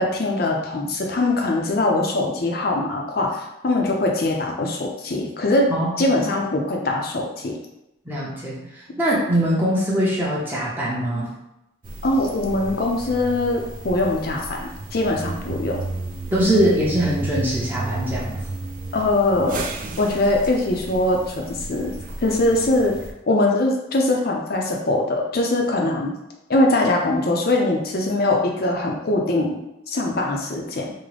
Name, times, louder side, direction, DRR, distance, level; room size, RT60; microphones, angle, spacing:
voice 1, 0.0-5.7 6.0-7.6 12.0-15.8 18.9-19.6 20.0-21.9 22.2-22.9 23.3-26.1 26.5-29.6 29.9-30.9, left 2 dB, 50° left, 0 dB, 0.5 m, -22 dB
voice 2, 5.7-6.1 8.1-11.3 16.3-18.4, equal, 10° right, -6 dB, 0.7 m, -22 dB
sound 1, 11.8-23.1, right 2 dB, 40° right, 0.4 m, -33 dB
3.7 x 2.1 x 3.2 m, 0.89 s
head